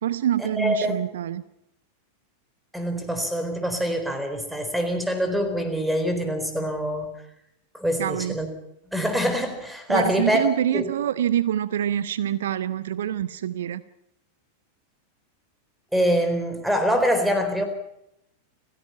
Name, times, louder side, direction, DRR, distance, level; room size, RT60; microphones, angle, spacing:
voice 1, 0.0-1.4 8.0-8.4 9.9-13.8, right 11 dB, 60° right, 16 dB, 0.8 m, -26 dB
voice 2, 0.6-0.9 2.7-7.1 7.7-8.5 8.9-10.4 10.7-10.9 15.9-17.7, equal, 5° right, 8 dB, 4.2 m, -24 dB
29.5 x 16.0 x 5.7 m, 0.82 s
figure-of-eight pair, 90°, 0 cm